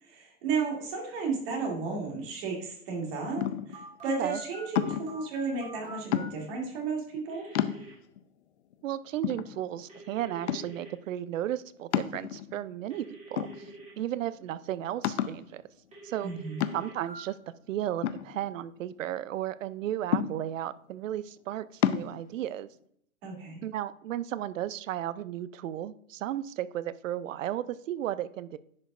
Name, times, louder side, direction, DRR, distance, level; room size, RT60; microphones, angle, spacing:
voice 1, 0.0-3.4 3.7-7.5 16.2-16.6 23.2-23.6, right 4 dB, 40° right, -1 dB, 2.7 m, -33 dB
Object falling on wood, 3.4-3.8 4.8-5.2 6.1-6.6 7.1-7.2 7.6-8.2 8.7-8.8 9.2-10.0 10.5-10.9 11.9-12.7 13.4-14.0 14.3-14.4 15.0-15.5 16.6-17.1 18.0-18.9 20.1-20.7 21.8-22.1, left 11 dB, 55° left, 0.6 m, -30 dB
Telephone, 3.7-6.3 7.3-7.9 9.9-10.9 12.9-13.9 15.9-17.2, right 2 dB, 15° right, 2.6 m, -46 dB
voice 2, 8.8-13.5 14.0-15.6 16.0-16.3 16.7-17.4 17.7-22.7 23.6-28.6, right 12 dB, 65° right, 16 dB, 0.5 m, -34 dB
10.5 x 5.3 x 2.5 m, 0.69 s
hypercardioid pair, 135°, 42 cm